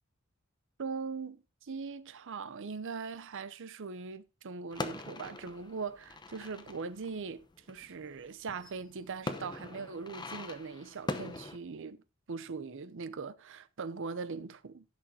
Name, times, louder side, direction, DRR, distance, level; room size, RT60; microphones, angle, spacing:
voice 1, 0.8-14.8, right 4 dB, 60° right, 0.7 m, -41 dB
sound 1, 4.7-11.6, left 2 dB, 20° left, 0.8 m, -42 dB
15.5 x 6.4 x 2.7 m
head